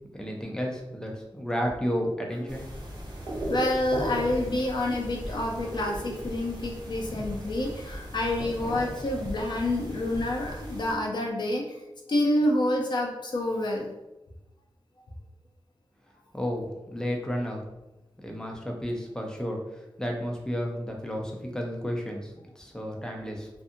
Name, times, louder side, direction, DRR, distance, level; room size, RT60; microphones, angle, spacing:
voice 1, 0.1-2.7 3.2-3.3 16.3-17.6 18.2-23.5, equal, 10° left, 1 dB, 0.5 m, -32 dB
sound 1, 2.5-10.9, right 1 dB, 50° right, 0.8 m, -37 dB
voice 2, 3.5-11.6 12.1-13.9, left 1 dB, 55° left, 0 dB, 0.6 m, -28 dB
2.6 x 2.5 x 2.5 m, 0.97 s
wide cardioid pair, 85°, 9 cm